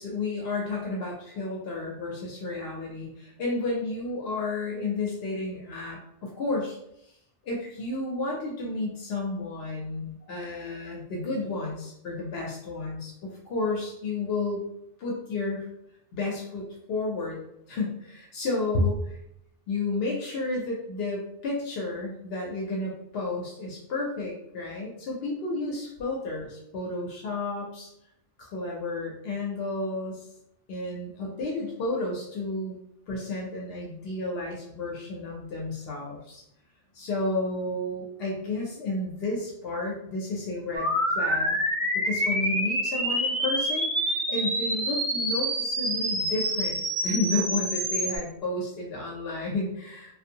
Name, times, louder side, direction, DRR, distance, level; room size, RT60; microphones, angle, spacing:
voice 1, 0.0-6.8 7.1-7.2 7.4-14.6 15.0-15.7 16.1-17.4 17.7-19.2 19.7-27.9 28.4-30.3 30.7-32.8 33.1-36.4 36.9-41.6 41.9-49.9, left 2 dB, 75° left, -2 dB, 0.8 m, -31 dB
sound 1, 40.8-48.2, equal, 35° right, 0.7 m, -27 dB
2.5 x 2.3 x 2.7 m, 0.78 s
omnidirectional pair, 1.1 m